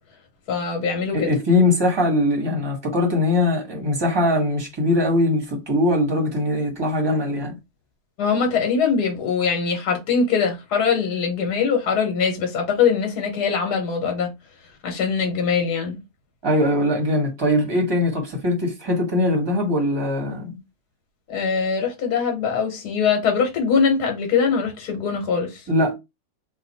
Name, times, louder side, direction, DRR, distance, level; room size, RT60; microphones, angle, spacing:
voice 1, 0.5-1.3 8.2-14.3 14.8-16.0 21.3-25.5, left 6 dB, 75° left, 1.5 m, -22 dB
voice 2, 1.1-7.6 16.4-20.6 25.7-25.9, left 1 dB, 20° right, 0.9 m, -21 dB
3.1 x 2.2 x 4.0 m
omnidirectional pair, 1.7 m